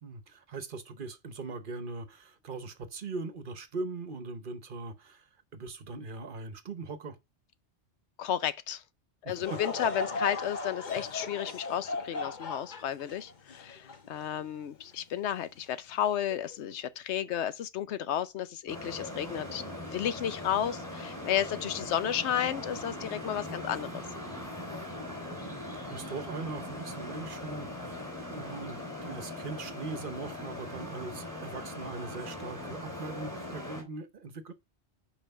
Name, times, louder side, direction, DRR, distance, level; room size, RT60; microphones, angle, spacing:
voice 1, 0.0-7.2 9.2-9.6 24.7-24.9 25.8-27.9 28.3-34.5, right 3 dB, 50° right, 1.0 m, -40 dB
voice 2, 8.2-8.8 9.2-19.6 19.9-24.0, left 10 dB, 80° left, 0.9 m, -32 dB
Laughter / Crowd, 9.4-14.8 15.4-15.5 16.3-16.5, left 3 dB, 45° left, 1.0 m, -37 dB
Traffic noise roadway noise, 18.7-33.8, left 1 dB, 5° left, 3.1 m, -40 dB
5.7 x 4.7 x 5.3 m
omnidirectional pair, 1.1 m